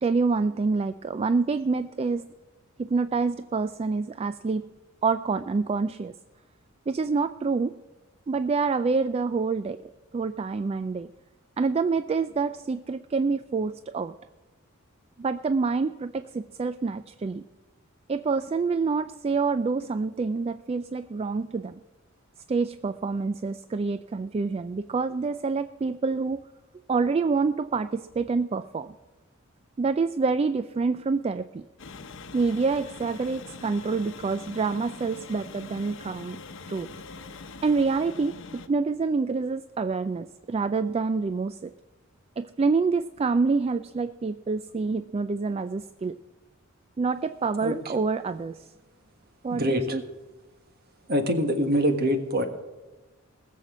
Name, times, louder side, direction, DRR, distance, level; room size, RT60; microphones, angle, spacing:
voice 1, 0.0-2.3 2.8-4.6 5.0-6.1 6.9-7.7 8.3-9.8 10.1-11.1 11.6-14.1 15.2-17.4 18.1-21.8 22.5-26.4 26.9-28.9 29.8-31.7 32.3-36.4 36.7-36.9 37.6-41.7 42.4-46.2 47.0-48.7 49.4-50.0, right 4 dB, 30° right, 12 dB, 0.3 m, -27 dB
sound 1, 31.8-38.7, left 4 dB, 65° left, 0.9 m, -43 dB
voice 2, 49.5-50.0 51.1-52.4, equal, 50° right, 6 dB, 1.5 m, -24 dB
19.0 x 7.5 x 6.1 m, 1.2 s
head